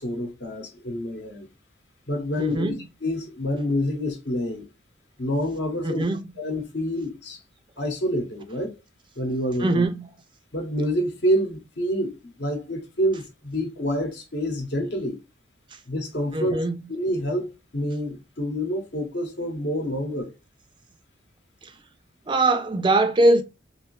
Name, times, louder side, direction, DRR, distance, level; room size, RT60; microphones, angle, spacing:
voice 1, 0.0-1.5 2.1-2.7 3.0-4.6 5.2-6.0 6.4-7.4 7.8-8.7 9.2-9.9 10.5-15.2 15.9-16.6 16.9-20.3, equal, 65° left, 1.0 m, -27 dB
voice 2, 2.4-2.8 5.8-6.2 9.6-10.1 16.3-16.8 22.3-23.4, right 2 dB, 25° right, 0.3 m, -21 dB
3.3 x 2.6 x 3.1 m
head